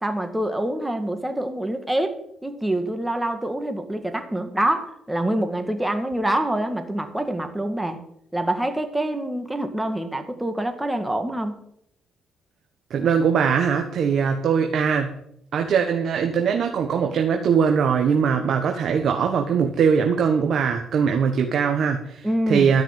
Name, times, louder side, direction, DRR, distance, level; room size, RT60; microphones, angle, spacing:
voice 1, 0.0-8.0 8.3-11.6 22.2-22.7, right 1 dB, 10° right, 7 dB, 2.0 m, -26 dB
voice 2, 12.9-15.1 15.5-22.8, right 6 dB, 65° right, 4 dB, 1.3 m, -21 dB
13.5 x 5.9 x 9.0 m, 0.72 s
cardioid pair, 90°, 0 cm